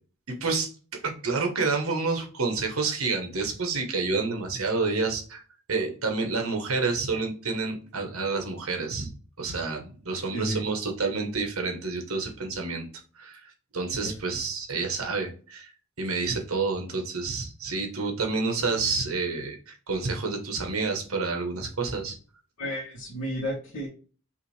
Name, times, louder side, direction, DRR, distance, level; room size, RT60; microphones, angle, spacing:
voice 1, 0.3-0.7 1.0-5.4 5.7-9.1 9.4-12.9 13.2-15.7 16.0-22.1, right 4 dB, 80° right, 3 dB, 1.2 m, -29 dB
voice 2, 10.3-10.6 14.0-14.1 22.6-23.9, equal, 85° left, -7 dB, 1.5 m, -32 dB
5.6 x 2.6 x 3.2 m, 0.39 s
head